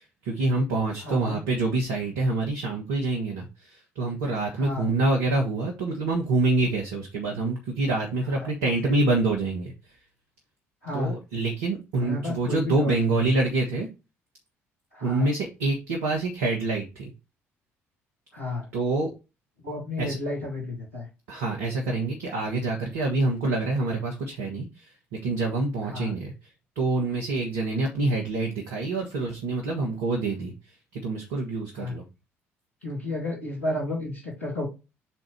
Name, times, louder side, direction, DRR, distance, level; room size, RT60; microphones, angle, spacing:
voice 1, 0.0-10.0 10.9-13.9 15.0-17.1 18.7-19.1 20.0-20.2 21.3-30.5 30.9-32.0, right 2 dB, 70° right, 0 dB, 1.2 m, -26 dB
voice 2, 1.0-1.4 4.5-4.9 8.3-8.9 10.8-11.1 12.0-13.2 14.9-15.3 18.3-18.7 19.6-21.1 25.8-26.1 31.8-31.9 32.8-34.7, left 2 dB, 85° left, -4 dB, 2.3 m, -32 dB
5.8 x 3.8 x 4.6 m, 0.27 s
figure-of-eight pair, 50°, 7 cm